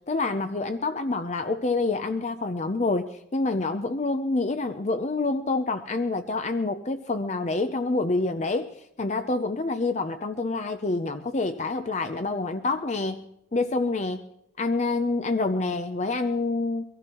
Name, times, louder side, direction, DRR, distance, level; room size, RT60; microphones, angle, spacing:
voice 1, 0.1-8.7 9.0-14.2 14.6-16.8, left 3 dB, 40° left, 8 dB, 0.6 m, -27 dB
24.0 x 15.5 x 3.0 m, 0.76 s
head